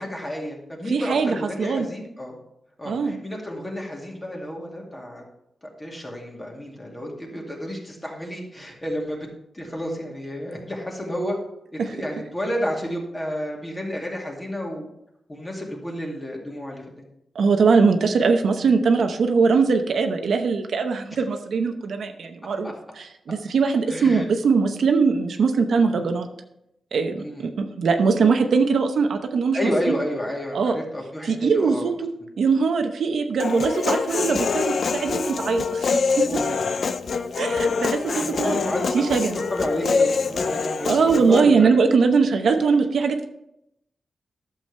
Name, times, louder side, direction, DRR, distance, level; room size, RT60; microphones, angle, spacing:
voice 1, 0.0-2.4 2.8-5.2 5.6-9.2 9.5-11.4 11.9-14.9 15.3-17.1 22.6-22.7 23.9-24.2 25.9-26.1 27.2-27.4 29.5-31.9 36.6-36.8 38.1-39.1 39.5-41.7, equal, 15° left, -1 dB, 2.2 m, -31 dB
voice 2, 0.9-1.9 2.8-3.2 11.8-12.1 17.3-26.3 26.9-29.6 29.9-30.0 30.5-30.8 31.2-32.1 32.4-36.2 37.4-39.4 40.9-43.3, right 5 dB, 75° right, 5 dB, 0.8 m, -21 dB
Human voice, 33.4-41.4, left 5 dB, 60° left, 0.4 m, -25 dB
11.5 x 7.1 x 3.3 m, 0.80 s
wide cardioid pair, 135°, 0 cm